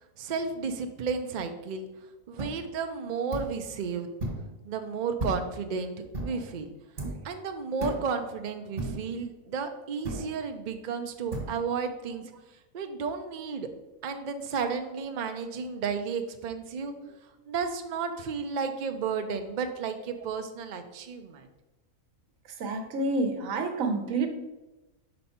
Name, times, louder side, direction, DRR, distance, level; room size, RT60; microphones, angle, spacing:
voice 1, 0.2-1.9 2.3-4.1 4.6-5.9 6.2-6.7 7.2-12.2 12.7-13.7 14.0-16.9 17.5-21.5, right 5 dB, 90° right, 6 dB, 0.4 m, -33 dB
sound 1, 2.4-2.6 3.3-3.6 4.2-4.5 5.2-5.6 6.1-6.4 7.0-7.3 7.8-8.1 8.8-9.1 10.0-10.4 11.3-11.5, right 1 dB, 40° right, 1.4 m, -34 dB
voice 2, 22.6-24.3, right 3 dB, 65° right, 6 dB, 1.1 m, -28 dB
5.5 x 5.4 x 4.3 m, 1.1 s
omnidirectional pair, 1.6 m